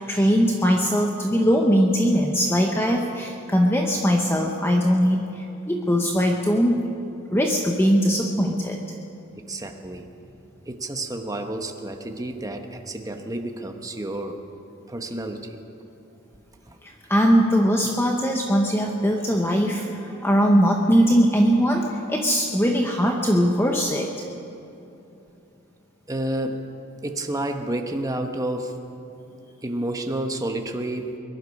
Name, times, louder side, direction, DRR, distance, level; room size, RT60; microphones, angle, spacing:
voice 1, 0.1-6.8 7.3-8.8 16.8-24.1, equal, 10° left, 1 dB, 0.9 m, -21 dB
voice 2, 9.3-10.1 10.6-14.4 14.9-15.6 16.7-16.8 26.1-26.6 27.0-28.8 29.6-31.2, right 1 dB, 15° right, 4 dB, 1.0 m, -30 dB
22.5 x 11.5 x 5.3 m, 2.8 s
head